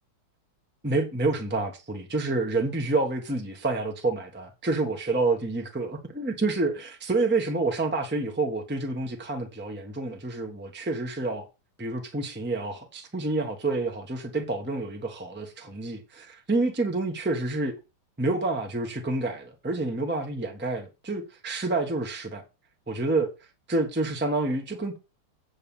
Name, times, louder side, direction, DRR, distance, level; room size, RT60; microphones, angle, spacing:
voice 1, 0.8-11.5 11.8-17.7 18.2-22.4 22.9-23.3 23.7-25.0, right 2 dB, 5° right, 1.0 m, -28 dB
8.4 x 4.2 x 7.1 m
omnidirectional pair, 2.4 m